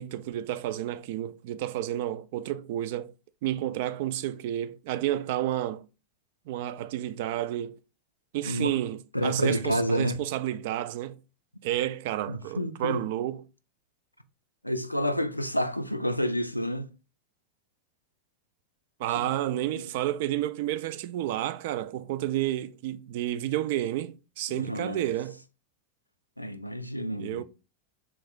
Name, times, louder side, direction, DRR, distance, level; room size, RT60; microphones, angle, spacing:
voice 1, 0.0-3.1 3.4-5.9 6.5-7.8 8.3-11.2 11.6-13.4 19.0-25.4 27.2-27.4, right 13 dB, 50° right, 0.3 m, -30 dB
voice 2, 9.1-10.2 12.3-13.1 14.6-16.9 19.2-19.3 24.5-25.0 26.4-27.4, equal, 90° left, 0.4 m, -29 dB
3.4 x 3.1 x 3.7 m
figure-of-eight pair, 90°, 0 cm